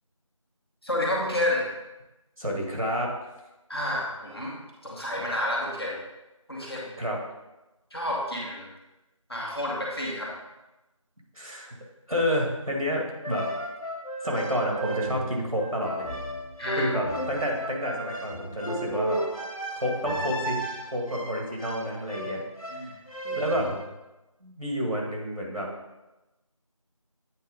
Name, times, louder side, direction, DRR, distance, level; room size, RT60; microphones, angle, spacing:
voice 1, 0.8-1.6 3.7-4.5 4.8-6.0 6.5-6.9 7.9-8.7 9.3-10.3 16.6-16.9 22.7-22.9, left 1 dB, 45° left, -4 dB, 1.6 m, -29 dB
voice 2, 2.4-3.3 7.0-7.2 11.3-11.7 12.1-13.5 14.2-16.1 16.8-19.2 19.7-20.6 20.9-22.4 23.2-23.7 24.4-25.7, equal, 90° right, -1 dB, 2.2 m, -29 dB
sound 1, 13.2-23.9, right 1 dB, 85° left, 1.3 m, -34 dB
8.4 x 4.4 x 3.7 m, 1.0 s
figure-of-eight pair, 180°, 18 cm